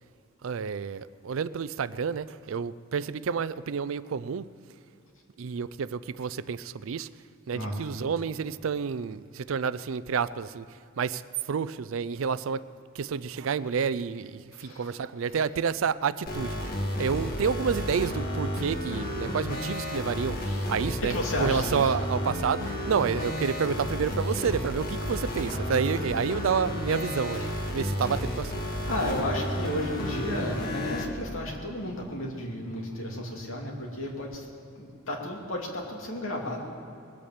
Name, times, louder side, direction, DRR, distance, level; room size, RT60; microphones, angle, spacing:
voice 1, 0.4-4.5 5.4-7.1 7.5-10.6 11.0-11.2 11.5-12.6 13.0-16.6 17.0-20.4 20.7-21.1 21.4-28.6, right 6 dB, 70° right, 17 dB, 0.4 m, -29 dB
voice 2, 14.5-15.0 20.4-20.7 21.0-21.9 27.4-27.6 28.0-28.2 28.9-34.5 34.7-36.6, left 1 dB, 70° left, 0 dB, 2.6 m, -33 dB
sound 1, 16.3-31.1, equal, 45° left, 1.7 m, -32 dB
21.0 x 8.5 x 7.4 m, 2.7 s
head